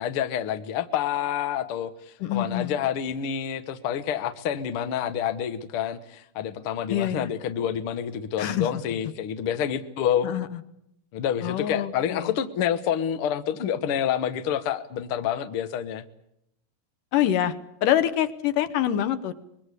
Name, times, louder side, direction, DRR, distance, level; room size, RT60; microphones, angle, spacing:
voice 1, 0.0-10.3 11.1-16.0, left 9 dB, 85° left, 10 dB, 1.2 m, -28 dB
voice 2, 2.2-2.7 6.9-7.3 8.4-8.7 10.2-10.5 11.4-12.3 17.1-17.6 17.8-19.3, left 11 dB, 70° left, 12 dB, 2.5 m, -25 dB
24.5 x 21.5 x 8.2 m, 0.77 s
omnidirectional pair, 4.3 m